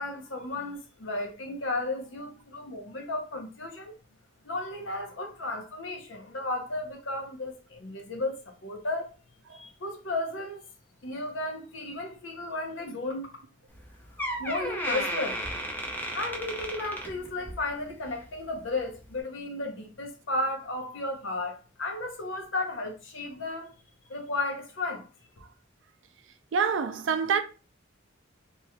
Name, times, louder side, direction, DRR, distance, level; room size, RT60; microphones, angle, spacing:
voice 1, 0.0-3.9 4.4-9.1 9.5-10.6 11.0-13.3 14.4-15.5 16.1-23.7 24.1-25.1, left 2 dB, 75° left, 0.8 m, -34 dB
Door, 13.7-13.8 14.2-17.7 18.0-18.3 19.0-19.1, equal, 10° left, 0.6 m, -34 dB
voice 2, 26.5-27.4, right 6 dB, 70° right, 0.4 m, -25 dB
3.1 x 3.0 x 2.3 m
head